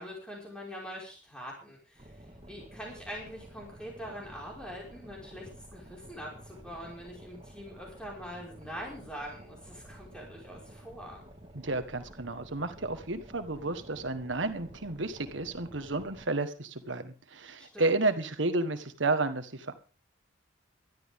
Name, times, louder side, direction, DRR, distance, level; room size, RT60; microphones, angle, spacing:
voice 1, 0.0-11.2 17.6-18.0, equal, 5° left, -3 dB, 5.3 m, -43 dB
Boat Water vehicle, 2.0-16.2, right 1 dB, 25° right, 2.2 m, -51 dB
voice 2, 11.5-19.7, right 2 dB, 75° right, 9 dB, 1.6 m, -31 dB
19.5 x 12.5 x 3.7 m, 0.38 s
head